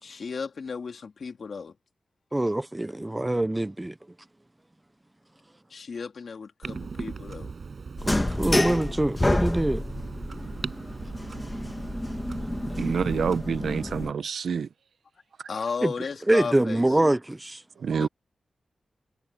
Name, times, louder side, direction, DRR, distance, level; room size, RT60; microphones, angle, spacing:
voice 1, 0.0-1.7 5.7-7.5 15.5-17.0 17.9-18.1, left 5 dB, 60° left, 2.8 m, -35 dB
voice 2, 2.3-3.9 8.0-9.8 15.8-15.9 16.3-17.6, right 1 dB, 15° right, 0.6 m, -24 dB
Clock, 6.6-13.4, right 5 dB, 55° right, 6.2 m, -38 dB
sound 1, 8.0-14.1, left 1 dB, 15° left, 1.9 m, -29 dB
voice 3, 12.8-14.7 17.8-18.1, right 6 dB, 80° right, 0.8 m, -27 dB
wide cardioid pair, 110°, 0 cm